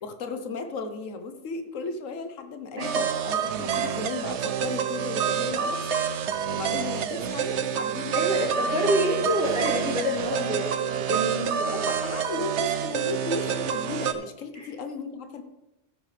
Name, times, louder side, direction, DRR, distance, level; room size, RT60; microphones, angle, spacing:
voice 1, 0.0-6.0 6.5-8.7 11.7-15.4, left 4 dB, 85° left, 7 dB, 1.4 m, -35 dB
Dramatic Music, 2.8-14.1, right 8 dB, 65° right, 0.9 m, -28 dB
voice 2, 8.1-11.9 14.5-14.7, equal, 90° right, -5 dB, 3.7 m, -28 dB
15.0 x 8.8 x 3.3 m, 0.95 s
omnidirectional pair, 1.3 m